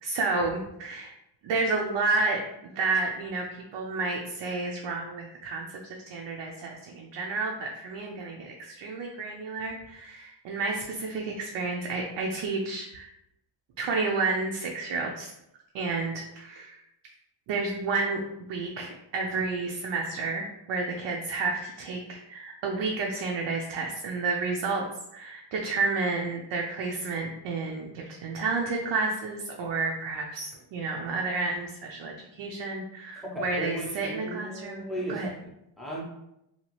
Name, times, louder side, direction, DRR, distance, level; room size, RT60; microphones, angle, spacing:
voice 1, 0.0-1.1 1.4-3.4 3.7-5.7 6.1-13.1 13.8-15.3 15.7-16.8 17.5-18.2 18.5-24.8 25.1-34.8 35.1-35.3, right 3 dB, 70° right, 0 dB, 0.5 m, -30 dB
voice 2, 33.1-36.0, equal, ahead, -3 dB, 0.5 m, -36 dB
2.8 x 2.3 x 2.9 m, 0.84 s
wide cardioid pair, 155°, 46 cm